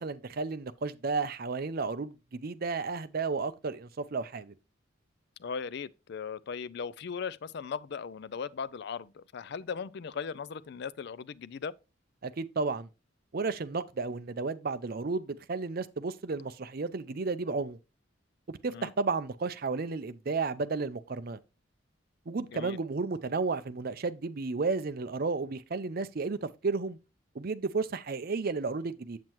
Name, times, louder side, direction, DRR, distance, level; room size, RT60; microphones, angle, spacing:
voice 1, 0.0-4.5 12.2-12.9 13.3-17.8 18.5-21.4 22.3-27.0 27.3-29.2, right 4 dB, 50° right, 0.5 m, -33 dB
voice 2, 5.4-11.7 18.7-18.9 22.5-22.8, left 6 dB, 55° left, 0.4 m, -38 dB
7.6 x 7.3 x 3.0 m
head